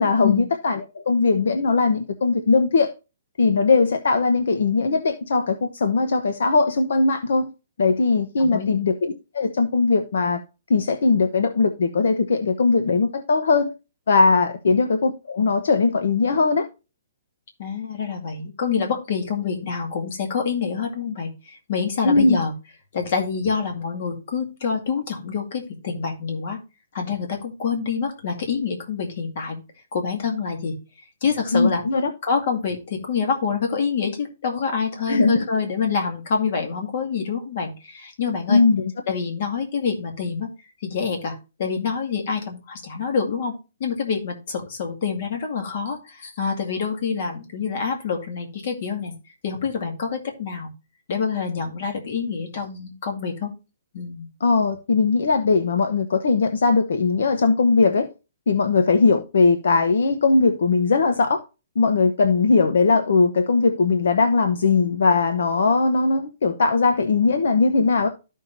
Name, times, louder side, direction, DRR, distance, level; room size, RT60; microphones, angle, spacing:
voice 1, 0.0-2.9 3.4-7.5 7.8-10.4 10.7-13.7 14.1-16.7 22.0-22.4 31.5-32.1 35.1-35.4 38.5-38.9 54.4-58.1 58.5-61.4 61.8-68.1, left 4 dB, 65° left, 0.9 m, -19 dB
voice 2, 8.4-8.8 17.6-22.5 22.9-26.6 26.9-29.6 29.9-30.8 31.2-31.8 32.2-38.6 39.1-40.5 40.8-43.5 43.8-49.1 49.4-50.7 51.1-53.5 53.9-54.3, left 5 dB, 40° left, 2.1 m, -26 dB
13.5 x 5.6 x 2.6 m
hypercardioid pair, 180°, 0 cm